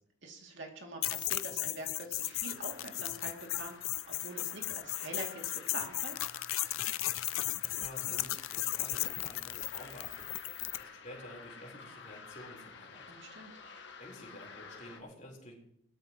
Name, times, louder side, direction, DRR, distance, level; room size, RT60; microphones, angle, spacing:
voice 1, 0.2-6.2 13.1-13.6, right 2 dB, 60° right, 1 dB, 2.6 m, -45 dB
sound 1, 1.0-10.8, left 16 dB, 75° left, 0.5 m, -36 dB
sound 2, 2.1-15.0, left 5 dB, 55° left, 1.5 m, -52 dB
voice 2, 7.6-10.3 10.7-13.1 13.9-15.5, left 1 dB, 35° left, -2 dB, 4.0 m, -50 dB
19.5 x 13.0 x 3.0 m, 0.74 s
head